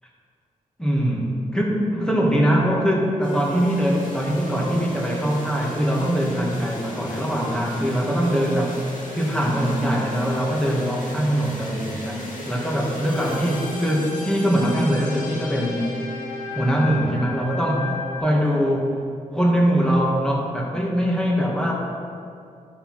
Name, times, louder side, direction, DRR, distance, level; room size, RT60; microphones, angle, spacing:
voice 1, 0.8-8.8 9.1-15.8 16.6-17.9 18.2-19.0 19.3-21.7, equal, 5° left, -2 dB, 1.9 m, -22 dB
sound 1, 3.2-18.2, left 2 dB, 70° left, 1.9 m, -36 dB
12.5 x 4.4 x 5.8 m, 2.4 s
cardioid pair, 85°, 14 cm